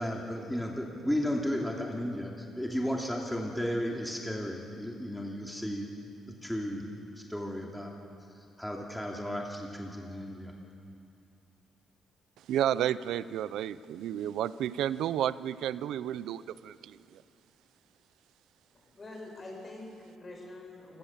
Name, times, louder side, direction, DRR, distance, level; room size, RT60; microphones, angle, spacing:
voice 1, 0.0-5.9 6.4-6.9 7.3-7.9 8.6-10.5, equal, 5° left, -1 dB, 2.8 m, -34 dB
voice 2, 12.5-17.2, right 11 dB, 80° right, 17 dB, 0.5 m, -32 dB
voice 3, 18.9-21.0, left 2 dB, 35° left, 1 dB, 7.1 m, -45 dB
29.0 x 17.5 x 7.3 m, 2.6 s
cardioid pair, 90°, 0 cm